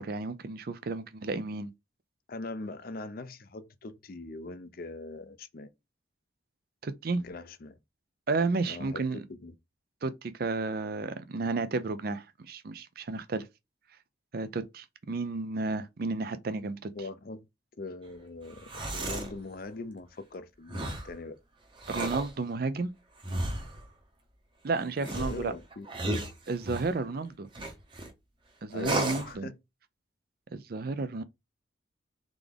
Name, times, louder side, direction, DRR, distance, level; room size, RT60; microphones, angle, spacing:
voice 1, 0.0-1.7 6.8-7.2 8.3-9.2 10.0-13.5 14.3-16.9 21.9-22.9 24.6-25.5 26.5-27.5 28.6-29.5 30.5-31.2, right 3 dB, 50° right, 0.5 m, -32 dB
voice 2, 2.3-5.7 7.2-7.8 8.7-9.5 16.9-17.5 17.8-21.4 25.1-25.9 28.7-29.6, left 3 dB, 50° left, 0.5 m, -41 dB
sound 1, 18.5-19.3 20.7-21.1 21.8-22.3 23.2-23.8 25.0-26.9 27.5-28.1 28.8-29.3, right 1 dB, 25° right, 0.9 m, -34 dB
3.7 x 3.5 x 3.4 m
head